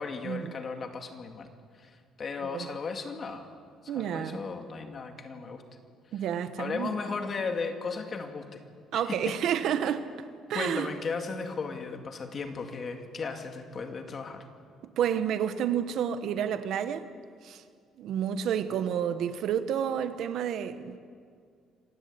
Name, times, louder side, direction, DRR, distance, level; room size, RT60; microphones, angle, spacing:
voice 1, 0.0-1.5 1.8-3.5 3.8-5.6 6.6-8.6 8.9-9.3 10.5-14.5, left 4 dB, 30° left, 2.1 m, -36 dB
voice 2, 3.9-4.4 6.1-6.9 8.9-10.9 14.8-17.1 17.4-17.6 18.0-21.0, right 9 dB, 55° right, 1.2 m, -30 dB
27.0 x 17.0 x 8.5 m
cardioid pair, 175°, 0 cm